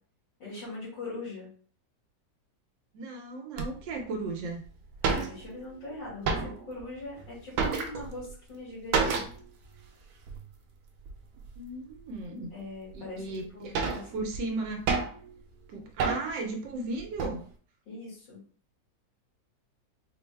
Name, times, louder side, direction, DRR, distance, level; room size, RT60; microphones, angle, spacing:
voice 1, 0.4-1.5 5.0-9.3 12.5-14.3 17.9-18.4, left 2 dB, 90° left, -7 dB, 2.6 m, -41 dB
voice 2, 2.9-4.6 11.6-12.5 12.9-13.7 14.1-14.9 15.7-17.4, right 2 dB, 85° right, 2 dB, 1.4 m, -35 dB
sound 1, 3.6-3.7 4.4-4.5 4.6-4.7 4.9-5.7 6.0-6.8 7.2-8.3 8.9-9.5 9.8-9.9 10.3-10.4 11.1-11.6 12.1-12.2 12.9-13.0 13.4-15.3 16.0-16.5 16.9-17.4, right 5 dB, 70° right, 1.0 m, -30 dB
4.7 x 2.0 x 3.3 m, 0.43 s
omnidirectional pair, 1.9 m